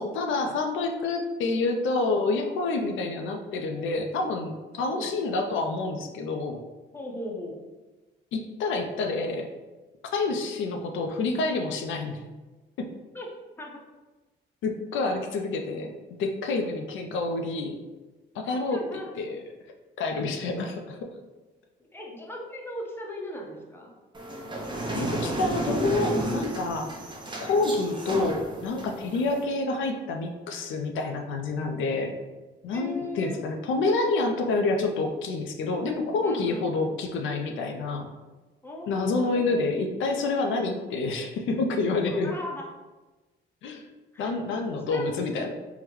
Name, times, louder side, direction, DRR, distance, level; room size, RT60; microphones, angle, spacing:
voice 1, 0.0-6.6 8.3-9.5 10.1-12.2 12.8-12.9 14.6-17.8 18.3-18.8 19.1-19.4 20.0-21.1 24.9-26.9 27.4-32.1 32.6-38.1 38.9-42.3 43.6-43.8 44.2-45.5, left 3 dB, 75° left, 4 dB, 0.4 m, -28 dB
voice 2, 4.8-5.1 6.9-7.6 13.1-13.3 13.6-13.8 18.4-19.1 21.8-23.9 27.6-27.8 29.1-29.2 32.7-33.4 36.2-36.9 38.6-39.6 42.2-42.7 44.1-44.3 44.9-45.2, left 1 dB, 10° left, -1 dB, 0.7 m, -39 dB
sound 1, 24.1-29.4, right 1 dB, 25° right, 0.6 m, -32 dB
3.7 x 2.1 x 2.9 m, 1.2 s
cardioid pair, 90°, 20 cm